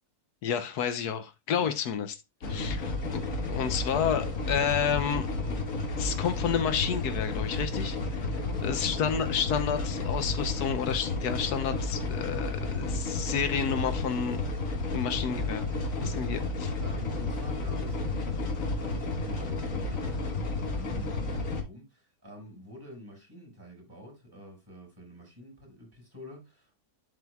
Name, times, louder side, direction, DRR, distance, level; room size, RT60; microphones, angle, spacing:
voice 1, 0.4-2.1 2.5-2.8 3.1-5.3 6.0-8.3 8.6-14.4 14.9-15.6 16.1-16.7, left 7 dB, 80° left, 1.3 m, -30 dB
sound 1, 2.4-21.6, left 3 dB, 60° left, 1.8 m, -32 dB
voice 2, 2.4-2.9 8.3-9.4 16.0-16.5 16.8-26.9, equal, 15° right, 5.0 m, -47 dB
11.5 x 4.9 x 2.3 m
omnidirectional pair, 1.6 m